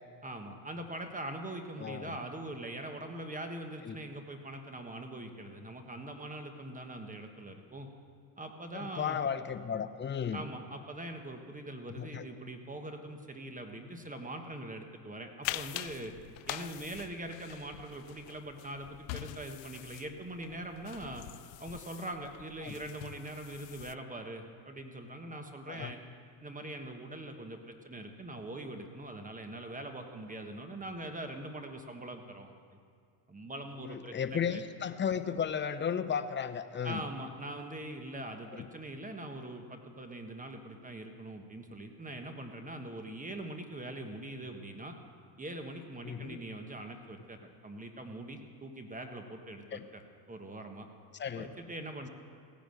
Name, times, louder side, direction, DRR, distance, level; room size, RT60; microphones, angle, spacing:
voice 1, 0.2-7.9 8.4-9.2 10.3-16.1 16.5-21.2 21.6-26.0 26.4-32.8 33.3-34.6 36.8-45.0 45.4-50.0 50.3-50.9 51.3-52.1, right 1 dB, 15° right, 5 dB, 1.3 m, -42 dB
voice 2, 1.8-2.1 3.8-4.0 8.7-10.4 12.0-12.3 22.6-22.7 25.7-25.9 33.8-37.0 38.5-38.7 46.0-46.4 49.7-49.9 51.1-51.5, left 7 dB, 25° left, 10 dB, 0.8 m, -34 dB
sound 1, 15.4-23.9, left 18 dB, 90° left, 0.5 m, -44 dB
16.5 x 10.5 x 6.5 m, 2.2 s
supercardioid pair, 95°, 46 cm